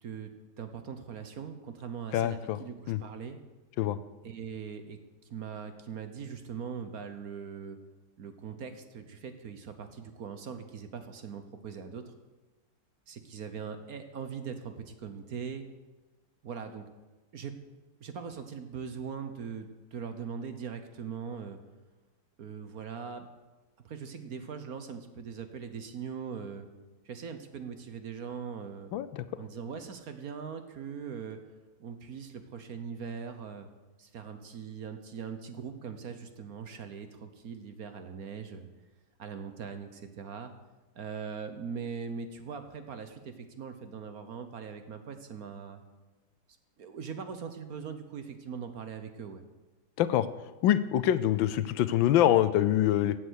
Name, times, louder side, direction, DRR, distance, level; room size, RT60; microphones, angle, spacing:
voice 1, 0.6-3.4 4.2-5.0 5.2-7.8 8.2-12.1 13.1-15.7 16.4-16.8 17.3-17.5 18.0-21.6 22.4-23.3 23.8-26.7 27.0-28.9 29.3-31.4 31.8-33.7 34.0-38.7 39.2-40.5 40.9-45.8 46.8-49.4, right 6 dB, 55° right, 8 dB, 1.3 m, -41 dB
voice 2, 2.1-2.6 2.9-3.0 3.8-4.0 28.9-29.2 50.0-50.3 50.6-53.2, left 12 dB, 80° left, 14 dB, 1.3 m, -25 dB
16.0 x 8.1 x 6.4 m, 1.2 s
omnidirectional pair, 2.2 m